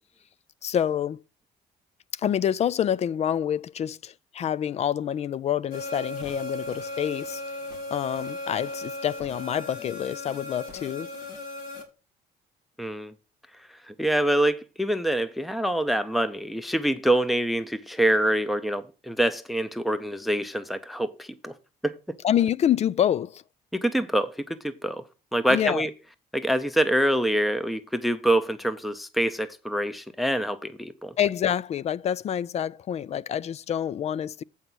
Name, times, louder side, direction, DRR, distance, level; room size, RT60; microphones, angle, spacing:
voice 1, 0.6-1.2 2.1-7.4 7.9-11.1 22.2-23.4 25.5-25.9 31.2-34.4, left 9 dB, 40° left, 0.4 m, -27 dB
sound 1, 5.7-11.8, left 2 dB, 70° left, 2.9 m, -36 dB
voice 2, 12.8-13.1 13.8-21.5 21.8-22.0 23.7-25.0 25.3-25.9 26.3-31.1, right 1 dB, ahead, 0.6 m, -25 dB
8.0 x 5.5 x 6.2 m
cardioid pair, 110°, 17 cm